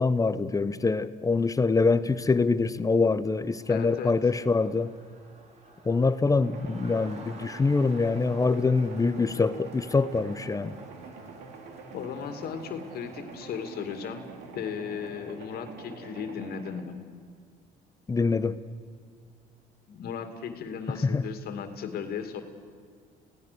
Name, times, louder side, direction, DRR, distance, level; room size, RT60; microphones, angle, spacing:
voice 1, 0.0-4.9 5.9-10.8 18.1-18.6 21.0-21.2, left 4 dB, 20° left, 14 dB, 0.7 m, -24 dB
Crowd, 3.4-15.9, right 3 dB, 40° right, 3.5 m, -53 dB
voice 2, 3.7-4.1 11.9-14.3 14.5-17.0 19.9-22.4, left 7 dB, 65° left, 7 dB, 2.5 m, -36 dB
sound 1, 6.4-16.8, right 4 dB, 85° right, 2.9 m, -45 dB
27.5 x 17.5 x 6.9 m, 2.1 s
cardioid pair, 110°, 17 cm